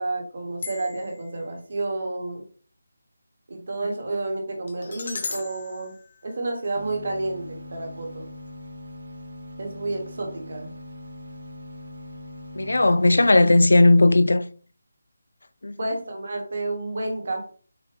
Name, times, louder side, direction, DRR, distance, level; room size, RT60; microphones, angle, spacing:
voice 1, 0.0-2.4 3.5-5.9 6.2-8.2 9.6-10.7 15.8-17.5, right 2 dB, 40° right, 1.2 m, -30 dB
sound 1, 0.6-1.3 4.7-6.9, left 4 dB, 30° left, 0.6 m, -37 dB
sound 2, 6.8-13.3, equal, 85° right, 1.4 m, -41 dB
voice 2, 12.6-14.4 15.6-15.8, left 2 dB, 85° left, 0.4 m, -16 dB
6.5 x 2.2 x 3.3 m
figure-of-eight pair, 180°, 0 cm